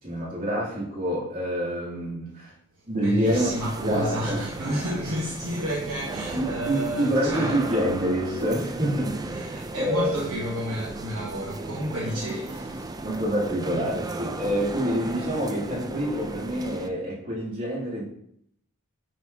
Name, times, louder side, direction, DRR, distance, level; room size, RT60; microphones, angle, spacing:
voice 1, 0.0-2.5 2.9-3.5 3.8-4.8 6.3-10.3 12.2-12.3 13.0-18.0, equal, 40° right, 2.8 m, -27 dB
voice 2, 2.9-7.6 9.3-12.9, equal, 65° right, 1.1 m, -31 dB
sound 1, 3.2-16.9, right 2 dB, 15° right, 0.3 m, -35 dB
9.8 x 4.4 x 2.8 m
head